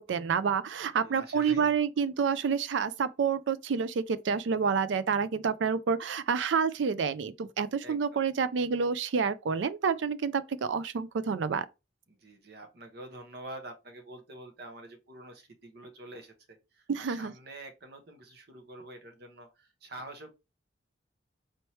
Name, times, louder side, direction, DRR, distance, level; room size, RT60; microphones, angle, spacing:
voice 1, 0.0-11.7 16.9-17.3, right 6 dB, 75° right, 0.4 m, -28 dB
voice 2, 1.0-1.8 7.8-8.3 12.1-20.3, right 1 dB, 60° right, 1.0 m, -47 dB
4.3 x 3.0 x 3.1 m
head